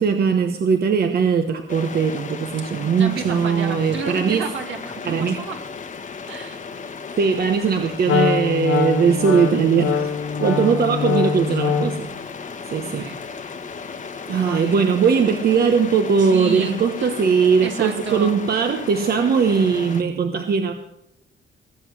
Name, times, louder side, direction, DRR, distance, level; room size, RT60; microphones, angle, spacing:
voice 1, 0.0-4.5 5.0-5.4 7.2-10.1 10.4-12.1 12.7-13.1 14.3-20.7, right 6 dB, 50° right, 6 dB, 1.1 m, -20 dB
sound 1, 1.7-20.0, left 5 dB, 40° left, 1.3 m, -35 dB
voice 2, 2.9-5.6 6.3-6.6 10.6-11.0 12.8-13.2 14.4-14.8 16.2-17.1 17.6-18.3, right 5 dB, 70° right, 4 dB, 2.4 m, -31 dB
Wind instrument woodwind instrument, 8.0-12.1, left 6 dB, 90° left, 1.4 m, -23 dB
19.0 x 7.8 x 6.1 m, 0.83 s
cardioid pair, 90°, 20 cm